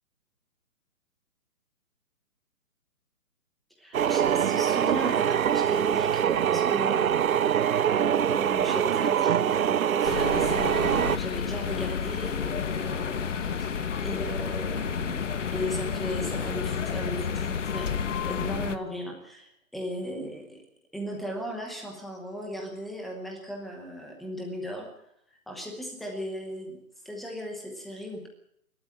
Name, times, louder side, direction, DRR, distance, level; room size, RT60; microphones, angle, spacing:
voice 1, 3.8-13.5 14.0-15.3 15.5-20.6 20.9-24.9 25.5-26.8 27.0-28.3, equal, ahead, 1 dB, 0.9 m, -37 dB
sound 1, 3.9-11.2, right 9 dB, 65° right, 0.8 m, -24 dB
sound 2, 10.0-18.8, left 6 dB, 55° left, 1.7 m, -30 dB
27.5 x 12.5 x 8.6 m, 0.71 s
hypercardioid pair, 170°, 44 cm